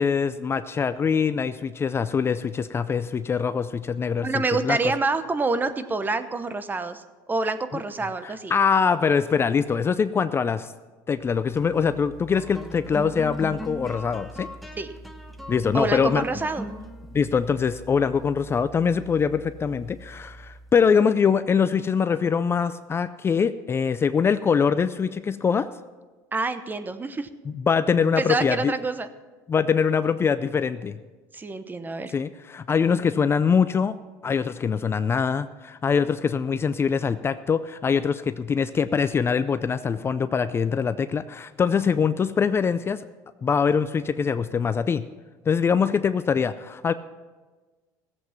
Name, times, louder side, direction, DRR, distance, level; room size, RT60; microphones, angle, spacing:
voice 1, 0.0-4.3 4.6-4.9 8.2-10.7 11.1-14.5 15.5-16.3 17.1-25.7 27.5-28.7 29.5-31.0 32.1-34.0 34.2-43.0 43.4-45.0 45.5-46.9, left 6 dB, 30° left, 12 dB, 0.4 m, -23 dB
voice 2, 4.2-7.0 7.3-8.5 14.8-14.9 15.7-16.6 26.3-27.3 28.2-29.1 31.3-32.1, right 3 dB, 20° right, 11 dB, 0.9 m, -27 dB
sound 1, 11.3-21.0, equal, ahead, 1.0 m, -40 dB
16.0 x 8.0 x 5.8 m, 1.3 s
supercardioid pair, 95°, 9 cm